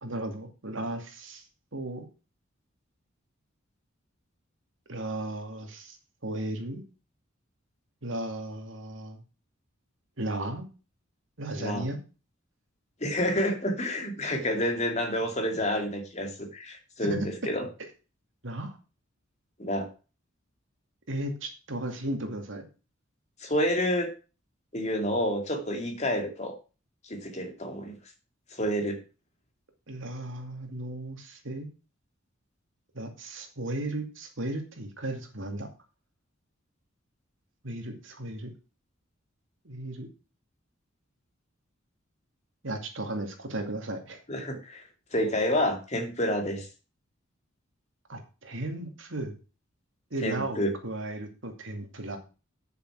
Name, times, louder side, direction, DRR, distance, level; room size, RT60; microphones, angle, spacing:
voice 1, 0.0-1.5 1.7-2.1 4.9-6.0 6.2-6.8 8.0-9.2 10.2-10.7 11.4-12.0 17.0-17.3 18.4-18.8 21.1-22.7 29.9-31.7 32.9-35.7 37.6-38.5 39.6-40.1 42.6-44.2 48.1-49.4 50.1-52.2, right 1 dB, 70° right, 4 dB, 2.5 m, -35 dB
voice 2, 13.0-17.7 19.6-19.9 23.4-24.1 24.7-26.5 27.1-28.0 28.6-29.0 44.3-44.8 45.1-46.7 50.2-50.7, equal, 35° left, 4 dB, 2.4 m, -29 dB
9.0 x 6.8 x 6.0 m, 0.33 s
head